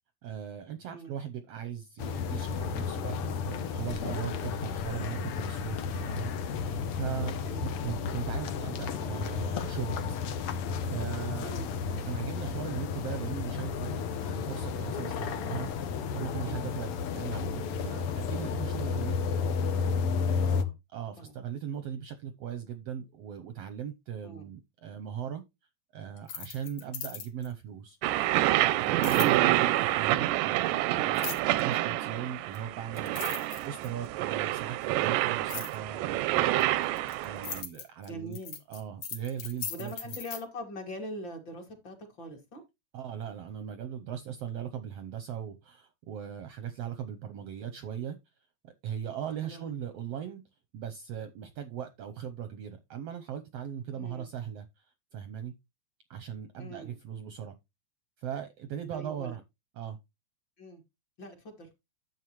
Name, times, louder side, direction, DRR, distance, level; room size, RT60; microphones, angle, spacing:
voice 1, 0.2-7.3 7.6-11.5 11.9-19.9 20.2-20.5 20.9-25.4 25.9-38.4 38.7-39.9 42.9-48.2 48.6-50.4 50.7-55.5 56.1-57.6 58.2-59.4 59.8-60.0, right 9 dB, 70° right, 1.5 m, -39 dB
sound 1, 2.0-20.6, left 6 dB, 70° left, 1.3 m, -32 dB
voice 2, 7.4-7.7 11.4-11.7 20.5-20.7 21.2-21.3 24.2-24.5 29.1-29.4 38.1-38.6 39.7-42.6 49.4-49.8 53.9-54.3 56.6-56.9 58.9-59.4 60.6-60.8 61.2-61.7, equal, 40° left, 2.7 m, -43 dB
sound 2, 26.2-27.5 29.0-29.3 31.1-31.6 32.5-32.6 33.0-34.1 35.5-35.8 36.6-40.4, left 7 dB, 55° left, 2.3 m, -39 dB
sound 3, 28.0-37.6, right 15 dB, 90° right, 2.2 m, -27 dB
11.0 x 7.5 x 3.1 m
omnidirectional pair, 3.6 m